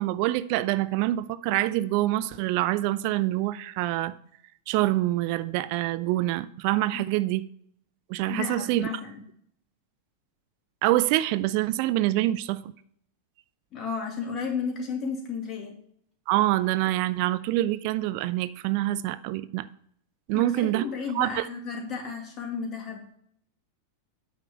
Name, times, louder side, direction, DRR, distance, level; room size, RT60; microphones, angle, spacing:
voice 1, 0.0-4.1 4.7-7.4 8.1-8.9 10.8-12.7 16.3-19.7 20.3-20.8 21.1-21.5, right 15 dB, 45° right, 0.4 m, -26 dB
voice 2, 8.3-9.2 13.7-15.8 20.3-23.2, left 5 dB, 30° left, 2.2 m, -33 dB
9.0 x 3.6 x 6.8 m
figure-of-eight pair, 90°, 0 cm